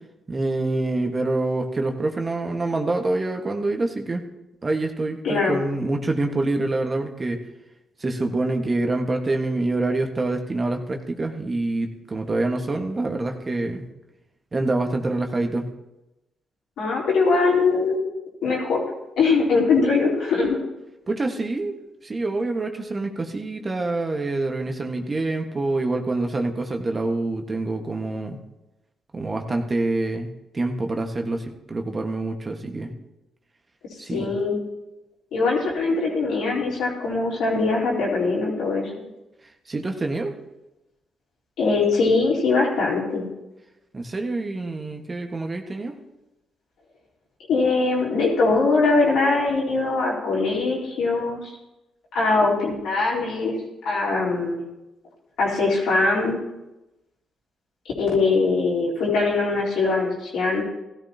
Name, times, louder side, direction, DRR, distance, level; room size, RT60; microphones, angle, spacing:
voice 1, 0.3-4.2 4.6-7.4 8.0-13.9 14.5-15.7 21.1-21.8 22.0-28.4 29.1-30.3 30.5-32.9 34.0-34.3 39.7-40.3 43.9-45.9, right 2 dB, 35° right, 4 dB, 1.6 m, -26 dB
voice 2, 5.2-5.6 16.8-18.0 18.4-18.8 19.2-20.6 34.1-34.6 35.3-39.0 41.6-43.3 47.5-51.5 52.1-53.5 53.8-54.6 55.4-56.4 58.0-60.6, left 3 dB, 75° left, -5 dB, 3.8 m, -21 dB
16.5 x 13.0 x 2.9 m, 0.97 s
hypercardioid pair, 45°, 0 cm